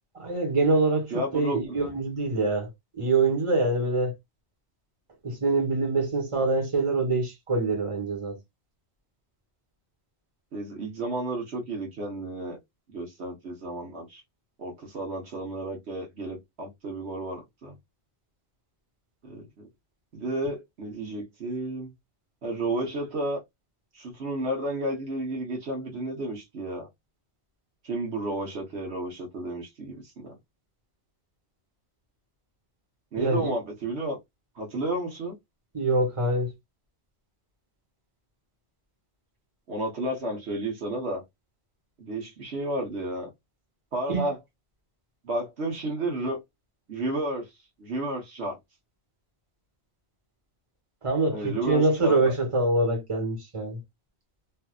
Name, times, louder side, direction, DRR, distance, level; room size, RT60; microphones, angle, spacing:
voice 1, 0.1-4.1 5.2-8.4 33.2-33.5 35.7-36.5 44.1-44.3 51.0-53.8, right 3 dB, 30° right, 1.3 m, -25 dB
voice 2, 1.1-1.8 10.5-12.6 12.9-14.2 14.6-17.7 19.2-19.5 20.1-21.9 22.4-23.4 23.9-26.9 27.8-30.3 33.1-34.2 34.5-35.4 39.7-41.2 42.0-43.3 43.9-44.4 45.2-46.4 46.9-47.5 47.8-48.6 51.3-52.3, right 1 dB, 70° right, 1.3 m, -32 dB
3.3 x 2.7 x 2.3 m
omnidirectional pair, 1.2 m